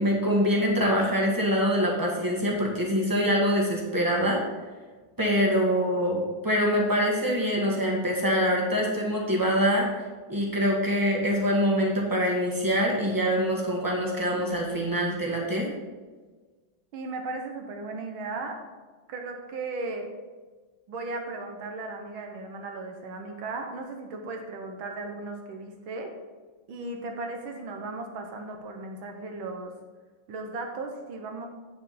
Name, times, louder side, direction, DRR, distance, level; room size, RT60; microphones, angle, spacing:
voice 1, 0.0-4.4 5.2-9.9 10.3-15.7, equal, 10° right, -2 dB, 1.5 m, -24 dB
voice 2, 16.9-18.6 19.1-20.1 20.9-26.1 26.7-29.7 30.3-31.5, right 3 dB, 75° right, 3 dB, 1.9 m, -36 dB
8.9 x 7.0 x 4.3 m, 1.4 s
omnidirectional pair, 2.2 m